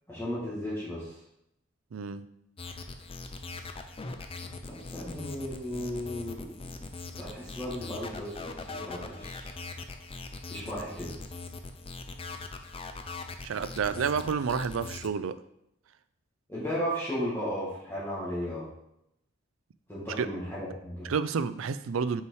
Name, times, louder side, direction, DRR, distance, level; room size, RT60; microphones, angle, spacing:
voice 1, 0.1-1.2 4.6-6.7 7.2-9.5 10.5-11.1 16.5-18.7 19.9-21.1, equal, 10° left, -10 dB, 2.1 m, -35 dB
voice 2, 1.9-2.2 13.4-15.4 20.2-20.3 21.0-22.2, right 6 dB, 75° right, 13 dB, 0.4 m, -30 dB
sound 1, 2.6-15.1, left 3 dB, 30° left, 0.5 m, -41 dB
5.7 x 4.8 x 4.7 m, 0.78 s
head